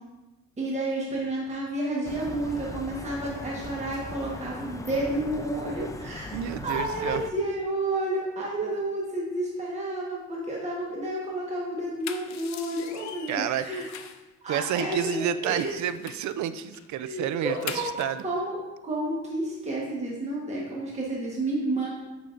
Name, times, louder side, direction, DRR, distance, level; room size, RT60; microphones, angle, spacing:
voice 1, 0.6-6.3 6.6-13.8 14.4-15.7 17.0-18.6 18.8-21.9, right 1 dB, 20° right, -4 dB, 1.2 m, -30 dB
sound 1, 2.0-7.3, left 2 dB, 10° left, 0.4 m, -39 dB
voice 2, 6.3-7.2 13.3-13.7 14.5-18.2, right 10 dB, 70° right, 12 dB, 0.5 m, -30 dB
sound 2, 11.8-14.3 14.6-16.3 16.7-16.9 17.2-18.2, left 9 dB, 65° left, 0.5 m, -42 dB
8.5 x 5.4 x 2.5 m, 1.1 s
cardioid pair, 90°, 30 cm